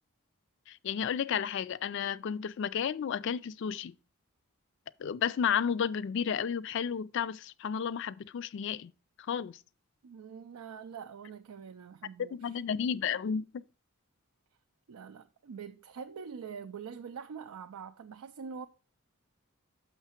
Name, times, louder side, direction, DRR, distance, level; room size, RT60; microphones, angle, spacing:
voice 1, 0.7-4.0 5.0-8.9 9.3-9.6 12.3-13.6, left 7 dB, 55° left, 0.3 m, -32 dB
voice 2, 10.0-12.6 14.9-18.7, right 6 dB, 90° right, 0.4 m, -44 dB
6.3 x 5.8 x 4.3 m
head